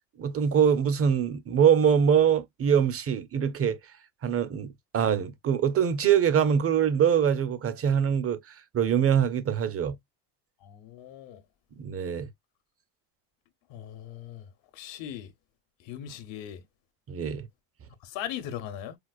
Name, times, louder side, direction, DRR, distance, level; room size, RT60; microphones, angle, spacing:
voice 1, 0.2-3.8 4.2-8.4 8.7-10.0 11.8-12.3 17.1-17.5, right 8 dB, 30° right, 0.5 m, -23 dB
voice 2, 10.6-11.4 13.7-14.5 14.7-15.3 15.8-16.6 18.0-19.0, left 10 dB, 80° left, 0.9 m, -39 dB
4.6 x 2.0 x 2.3 m
cardioid pair, 105°, 45 cm